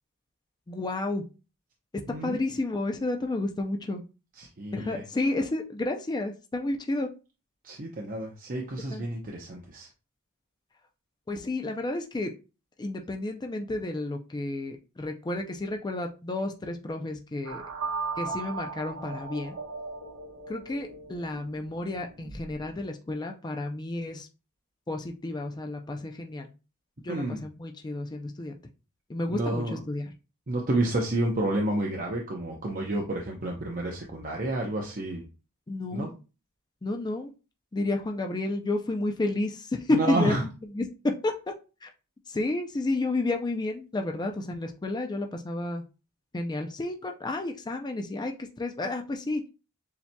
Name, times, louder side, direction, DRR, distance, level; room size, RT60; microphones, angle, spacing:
voice 1, 0.7-1.2 1.9-4.0 4.7-7.1 8.9-9.0 11.3-12.3 12.8-17.6 18.2-19.5 20.5-24.3 24.9-26.5 27.0-28.6 29.1-30.1 35.7-36.1 36.8-37.3 37.7-41.3 41.8-41.9 42.3-45.8 46.3-48.3 48.6-49.4, left 2 dB, 20° left, 3 dB, 0.4 m, -31 dB
voice 2, 2.1-2.4 4.4-5.0 7.6-9.9 27.1-27.4 29.3-29.8 30.5-35.2 35.9-36.1 39.9-40.4, right 1 dB, 40° right, -1 dB, 0.7 m, -30 dB
sound 1, 17.4-22.7, right 4 dB, 65° right, 1.1 m, -37 dB
6.9 x 2.8 x 2.2 m, 0.31 s
head